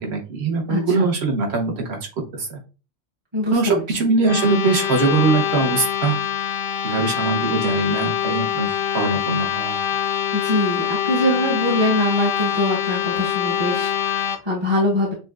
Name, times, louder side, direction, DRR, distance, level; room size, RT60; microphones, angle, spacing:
voice 1, 0.0-2.0 2.3-2.6 3.5-6.2 6.8-9.8, right 3 dB, 60° right, 3 dB, 1.1 m, -21 dB
voice 2, 0.7-1.1 3.3-3.8 10.3-15.1, left 1 dB, 25° right, -4 dB, 0.8 m, -23 dB
sound 1, 4.2-14.4, left 10 dB, 60° left, 0.6 m, -24 dB
6.8 x 2.3 x 2.4 m, 0.33 s
omnidirectional pair, 1.3 m